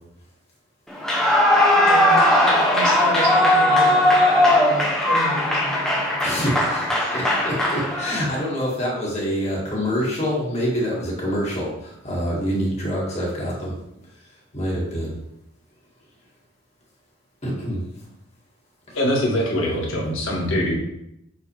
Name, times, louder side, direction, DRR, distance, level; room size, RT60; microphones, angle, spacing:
Clapping / Cheering / Applause, 1.0-8.4, left 1 dB, 5° left, 0.9 m, -18 dB
voice 1, 1.7-6.1, right 1 dB, 65° right, -3 dB, 2.3 m, -32 dB
voice 2, 6.2-13.7 14.5-15.1 17.4-17.8 18.9-19.0, equal, 30° left, -5 dB, 2.2 m, -26 dB
voice 3, 18.9-20.7, equal, 70° left, -2 dB, 1.7 m, -23 dB
8.2 x 4.1 x 3.4 m, 0.83 s
head